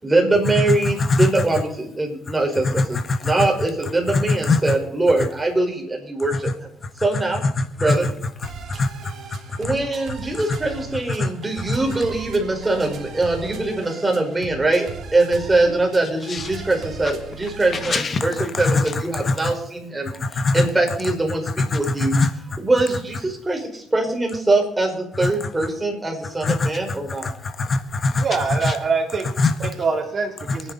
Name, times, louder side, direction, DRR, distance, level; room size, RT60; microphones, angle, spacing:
voice 1, 0.0-3.0 3.2-6.7 7.0-7.4 7.8-8.1 9.6-22.2 22.6-27.3, right 2 dB, 15° right, 1 dB, 5.1 m, -22 dB
voice 2, 0.8-1.3 2.6-3.3 4.1-4.6 6.3-6.4 7.4-8.0 8.4-9.4 9.6-9.7 11.2-11.3 11.7-11.8 16.3-16.5 17.7-19.5 20.2-20.6 21.6-22.3 25.2-25.5 26.4-27.0 27.2-28.2 28.6-28.7 29.4-29.7 30.5-30.7, left 3 dB, 40° left, 9 dB, 1.5 m, -23 dB
sound 1, 8.4-18.0, right 5 dB, 65° right, 2.8 m, -38 dB
voice 3, 28.2-29.3 29.6-30.7, right 4 dB, 50° right, 2 dB, 3.6 m, -24 dB
27.0 x 10.0 x 4.3 m, 0.75 s
cardioid pair, 90°, 0 cm